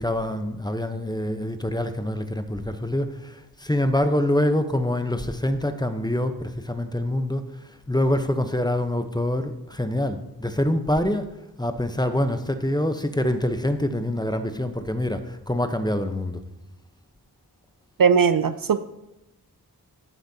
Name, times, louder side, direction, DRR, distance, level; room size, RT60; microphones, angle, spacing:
voice 1, 0.0-11.3 11.6-16.4, left 1 dB, 10° left, 8 dB, 0.8 m, -25 dB
voice 2, 18.0-18.8, right 6 dB, 60° right, 12 dB, 0.5 m, -19 dB
14.5 x 8.1 x 2.8 m, 0.95 s
wide cardioid pair, 40°, 40 cm